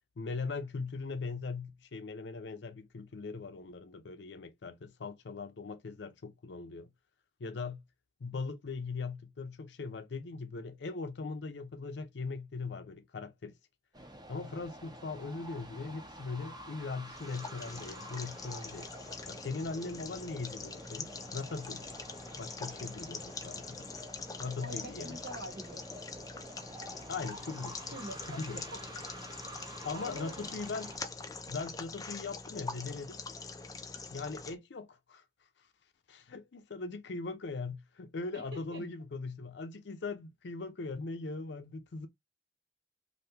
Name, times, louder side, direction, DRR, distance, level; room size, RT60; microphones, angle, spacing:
voice 1, 0.2-6.9 7.4-7.8 8.2-13.5 14.3-18.9 19.3-21.8 22.4-23.9 24.4-25.2 26.9-27.8 28.3-28.6 29.8-30.9 31.5-33.2 34.1-35.2 36.1-42.1, left 4 dB, 75° left, 0.5 m, -40 dB
sound 1, 13.9-31.0, right 1 dB, 25° right, 0.7 m, -49 dB
sound 2, 17.1-34.5, left 4 dB, 20° left, 0.4 m, -44 dB
voice 2, 24.6-26.0 27.9-28.4 28.7-28.8 29.6-30.4 38.3-38.8, right 1 dB, 70° right, 1.2 m, -45 dB
3.4 x 2.6 x 2.8 m
head